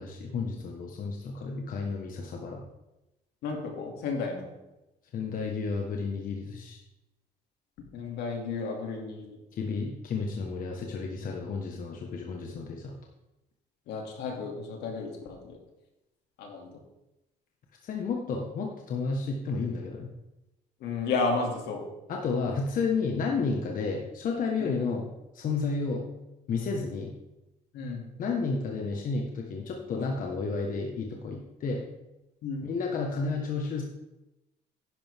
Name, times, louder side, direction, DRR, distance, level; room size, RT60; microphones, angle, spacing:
voice 1, 0.0-2.6 5.1-6.8 9.5-12.9 17.8-20.1 22.1-26.0 26.5-27.1 28.2-31.8 32.6-33.8, left 4 dB, 55° left, 1 dB, 1.5 m, -31 dB
voice 2, 3.4-4.5 7.9-9.4 13.9-15.6 16.4-16.7 20.8-21.8 24.6-24.8 27.7-28.1 32.4-32.7, left 4 dB, 80° left, 1 dB, 2.7 m, -32 dB
11.0 x 10.0 x 3.7 m, 0.95 s
cardioid pair, 110°, 17 cm